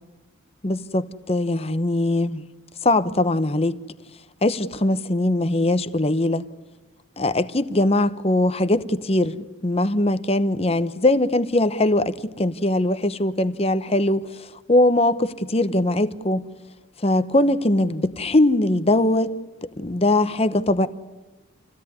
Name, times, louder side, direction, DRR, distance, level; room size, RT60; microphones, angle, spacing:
voice 1, 0.6-2.4 2.8-3.8 4.4-6.4 7.2-9.4 9.6-14.2 14.7-16.5 17.0-19.3 19.8-20.9, left 1 dB, 30° left, 0.9 m, -21 dB
27.0 x 16.5 x 9.7 m
head